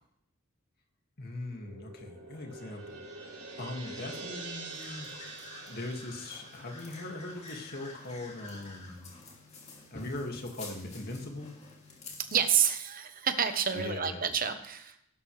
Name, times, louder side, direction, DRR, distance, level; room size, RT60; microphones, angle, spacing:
voice 1, 1.2-5.1 5.7-9.1 9.9-11.5 13.7-14.3, left 2 dB, 45° left, 2 dB, 2.1 m, -40 dB
sound 1, 1.5-8.1, right 3 dB, 80° right, 3.8 m, -46 dB
sound 2, 4.7-12.4, left 3 dB, 30° left, 2.7 m, -49 dB
voice 2, 12.3-14.9, right 8 dB, 40° right, 8 dB, 1.1 m, -28 dB
16.0 x 12.5 x 3.3 m, 0.74 s
head